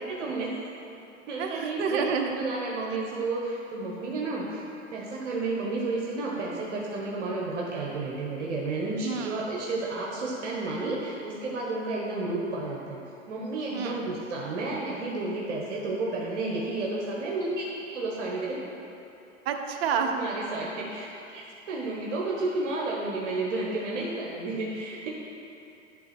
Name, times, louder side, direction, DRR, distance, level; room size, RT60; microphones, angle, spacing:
voice 1, 0.1-0.6 1.3-2.0 2.3-4.6 4.9-13.0 13.3-18.6 20.1-25.1, right 2 dB, 65° right, -3 dB, 1.4 m, -31 dB
voice 2, 1.4-2.4 9.0-9.4 13.7-14.0 19.5-20.1, right 6 dB, 50° right, 4 dB, 0.9 m, -29 dB
11.5 x 4.0 x 6.0 m, 2.8 s
hypercardioid pair, 120°, 38 cm